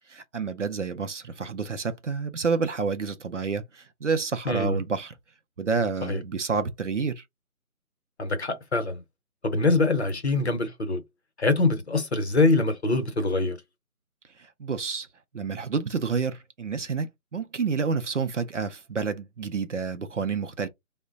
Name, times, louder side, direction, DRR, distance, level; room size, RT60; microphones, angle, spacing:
voice 1, 0.1-5.1 5.6-7.2 14.6-15.1 15.3-20.7, right 5 dB, 55° right, 0.5 m, -29 dB
voice 2, 4.5-4.8 6.1-6.2 8.2-9.0 9.4-11.0 11.4-13.6, left 3 dB, 50° left, 0.8 m, -24 dB
3.3 x 2.1 x 3.6 m
figure-of-eight pair, 170°, 43 cm